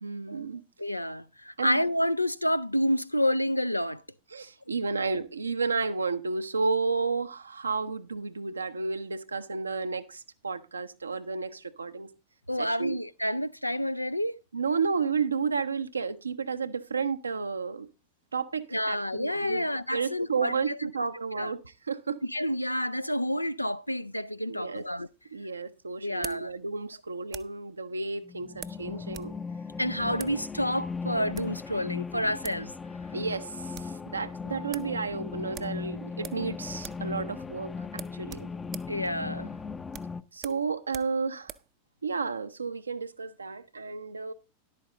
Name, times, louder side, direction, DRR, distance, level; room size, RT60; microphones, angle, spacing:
voice 1, 0.0-0.6 1.6-1.8 4.3-12.1 12.6-13.0 14.5-17.9 18.3-19.7 19.9-22.2 24.5-24.8 25.3-29.3 33.1-38.5 40.3-41.5 42.0-44.3, right 4 dB, 75° right, 0.7 m, -32 dB
voice 2, 0.8-4.0 12.5-14.4 18.7-20.9 21.4-21.5 22.2-25.1 26.0-26.5 29.8-32.7 38.9-39.6, equal, 85° left, 0.4 m, -29 dB
sound 1, 24.8-27.7 28.6-29.4 29.6-29.7 30.1-30.4 31.1-31.6 32.2-32.3 32.4-32.7 33.0-33.1 33.4-34.0 34.3-34.4 34.7-34.9 35.5-36.5 36.8-37.1 37.4-37.5 37.9-41.7, right 11 dB, 30° right, 0.5 m, -45 dB
sound 2, 28.2-40.2, left 5 dB, 15° left, 0.5 m, -38 dB
11.0 x 8.6 x 3.7 m
figure-of-eight pair, 90°, 0 cm